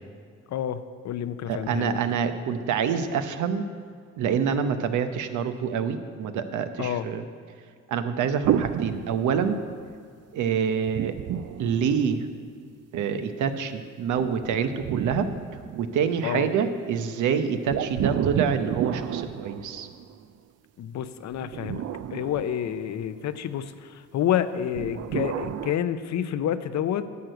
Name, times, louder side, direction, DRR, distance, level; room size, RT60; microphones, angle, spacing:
voice 1, 0.5-2.0 6.8-7.1 16.2-16.5 20.8-21.8 22.1-27.1, left 10 dB, 65° left, 12 dB, 0.7 m, -29 dB
voice 2, 1.5-3.6 4.2-7.2 7.9-9.6 10.3-11.2 11.5-12.3 12.9-15.3 15.7-19.9, right 7 dB, 80° right, 9 dB, 0.8 m, -26 dB
sound 1, 8.4-9.9 10.9-12.5 14.2-16.2 17.7-20.2 21.3-23.2 24.7-25.7, right 10 dB, 55° right, 0.5 m, -31 dB
10.5 x 6.6 x 7.8 m, 2.2 s
cardioid pair, 90°, 30 cm